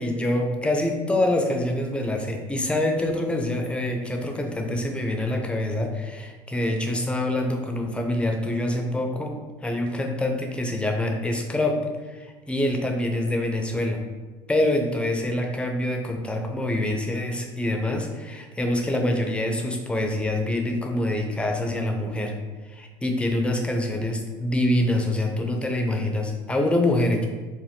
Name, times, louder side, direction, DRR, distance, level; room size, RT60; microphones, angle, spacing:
voice 1, 0.0-9.3 9.6-11.8 12.1-14.0 14.5-22.3 22.7-27.3, left 1 dB, 5° left, 2 dB, 0.4 m, -25 dB
2.6 x 2.2 x 3.3 m, 1.3 s
hypercardioid pair, 80°, 14 cm